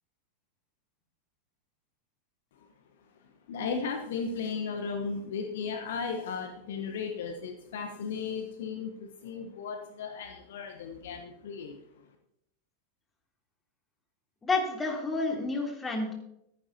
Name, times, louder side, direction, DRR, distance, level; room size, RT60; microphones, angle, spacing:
voice 1, 3.5-11.8, left 5 dB, 55° left, 5 dB, 1.1 m, -35 dB
voice 2, 14.4-16.1, left 3 dB, 15° left, 0 dB, 3.2 m, -30 dB
15.0 x 14.0 x 2.8 m, 0.79 s
figure-of-eight pair, 90°, 0 cm